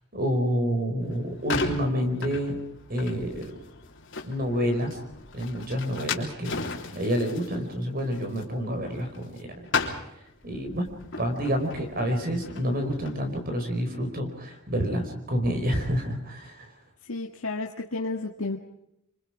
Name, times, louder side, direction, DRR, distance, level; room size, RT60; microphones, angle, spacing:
voice 1, 0.1-2.6 2.9-3.5 4.2-5.0 5.3-6.6 6.9-9.5 10.4-10.9 11.2-16.7, equal, 40° right, 5 dB, 4.9 m, -28 dB
sound 1, 1.0-9.4 9.6-13.3, left 4 dB, 60° left, 3.5 m, -35 dB
voice 2, 17.0-18.6, left 3 dB, 75° left, 1 dB, 1.8 m, -32 dB
27.0 x 26.0 x 5.0 m, 0.79 s
head